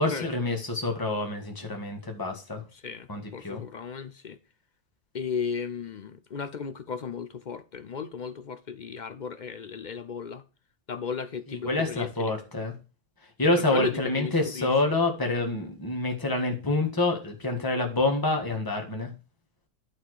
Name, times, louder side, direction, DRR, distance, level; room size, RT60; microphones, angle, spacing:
voice 1, 0.0-2.6 3.1-3.6 11.5-12.7 13.4-19.1, left 2 dB, 15° left, 1.7 m, -27 dB
voice 2, 2.7-4.4 5.1-10.4 10.9-12.3 13.7-14.8, left 6 dB, 55° left, 0.5 m, -35 dB
11.5 x 4.3 x 4.7 m
omnidirectional pair, 1.4 m